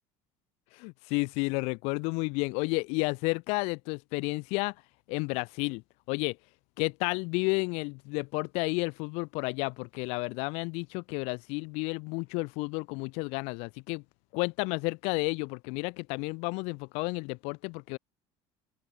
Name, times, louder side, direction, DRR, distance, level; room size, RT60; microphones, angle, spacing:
voice 1, 0.7-4.7 5.1-5.8 6.1-6.4 6.8-14.0 14.3-18.0, left 30 dB, 70° left, 0.6 m, -31 dB
open air
cardioid pair, 170°, 11 cm